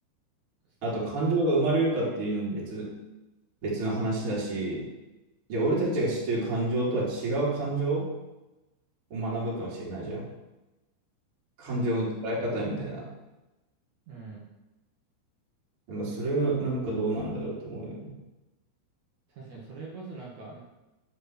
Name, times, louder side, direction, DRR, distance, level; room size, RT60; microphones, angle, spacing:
voice 1, 0.8-2.9 3.6-4.9 5.5-8.1 9.1-10.3 11.6-13.1 15.9-18.1, right 2 dB, 35° right, -5 dB, 3.6 m, -28 dB
voice 2, 14.1-14.4 19.3-20.6, right 4 dB, 50° right, -4 dB, 2.6 m, -43 dB
9.6 x 7.9 x 6.1 m, 1.0 s
omnidirectional pair, 5.3 m